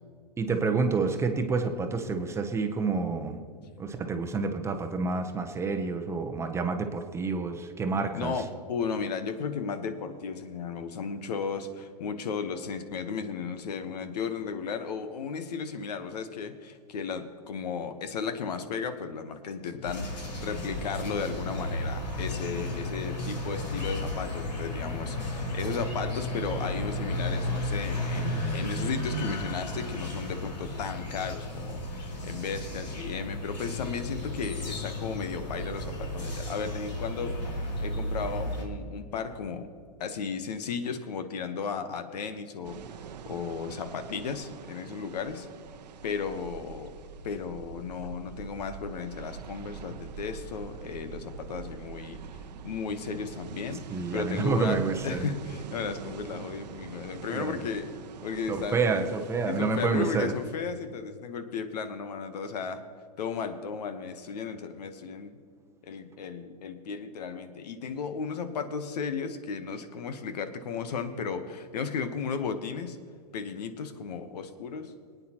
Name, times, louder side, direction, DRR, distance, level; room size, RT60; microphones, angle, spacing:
voice 1, 0.4-3.4 3.8-8.3 53.9-55.3 57.3-57.6 58.5-60.3, right 4 dB, 15° right, 5 dB, 0.8 m, -28 dB
voice 2, 8.1-37.4 37.8-39.7 40.0-42.8 43.2-45.5 46.0-46.9 47.2-52.2 52.6-57.9 58.2-58.8 59.4-62.8 63.2-65.4 65.8-73.0 73.3-74.9, left 5 dB, 70° left, 9 dB, 1.1 m, -35 dB
sound 1, 19.8-38.6, left 1 dB, 85° left, 2.9 m, -33 dB
sound 2, 42.6-60.5, right 7 dB, 75° right, 0.8 m, -44 dB
21.5 x 9.2 x 3.0 m, 2.1 s
hypercardioid pair, 125°, 21 cm